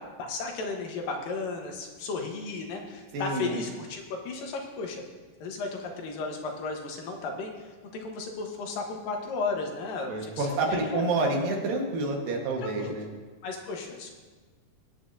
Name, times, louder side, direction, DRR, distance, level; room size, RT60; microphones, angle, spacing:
voice 1, 0.0-5.0 5.4-11.0 12.6-12.9 13.4-14.1, left 4 dB, 75° left, 2 dB, 2.9 m, -34 dB
voice 2, 3.1-3.6 10.1-13.0, right 2 dB, 75° right, 0 dB, 3.2 m, -28 dB
22.5 x 8.7 x 2.7 m, 1.4 s
omnidirectional pair, 4.0 m